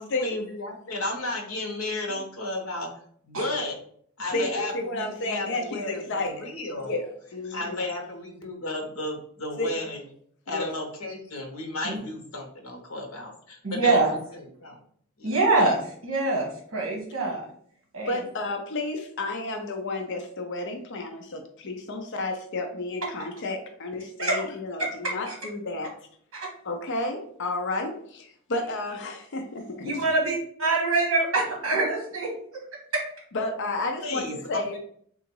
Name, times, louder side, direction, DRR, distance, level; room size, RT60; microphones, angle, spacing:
voice 1, 0.0-2.9 3.2-3.8 4.2-6.9 7.5-10.0 10.5-14.0 14.3-14.8 15.2-15.3 34.0-34.8, left 2 dB, 75° left, 2 dB, 1.0 m, -33 dB
voice 2, 4.3-6.4 6.8-7.1 7.3-7.8 9.6-9.7 10.5-10.7 18.1-25.9 26.6-29.9 33.3-34.8, left 2 dB, 60° left, 4 dB, 0.6 m, -31 dB
voice 3, 13.6-14.1 15.2-17.4 17.9-18.2 24.2-24.4 24.8-24.9 25.3-25.4 26.3-26.5 29.8-32.6 32.9-33.0, right 3 dB, 60° right, -1 dB, 1.0 m, -25 dB
3.8 x 2.5 x 4.4 m, 0.63 s
head